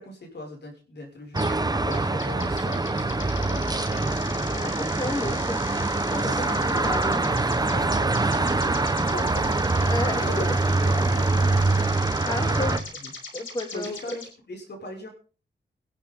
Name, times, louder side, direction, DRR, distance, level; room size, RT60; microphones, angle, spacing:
voice 1, 0.0-4.7 6.3-6.9 7.2-9.9 10.2-10.4 10.7-11.2 12.4-13.1 13.7-15.1, left 1 dB, 60° left, 3 dB, 6.5 m, -40 dB
sound 1, 1.3-12.8, right 2 dB, 20° right, 1.3 m, -24 dB
sound 2, 1.4-1.6 1.9-14.3, left 4 dB, 80° left, 5.4 m, -40 dB
voice 2, 4.6-5.6 5.9-7.2 9.9-10.6 12.3-12.8 13.3-14.2, left 1 dB, 20° left, 4 dB, 2.6 m, -32 dB
21.0 x 12.5 x 3.9 m, 0.37 s
cardioid pair, 80°, 20 cm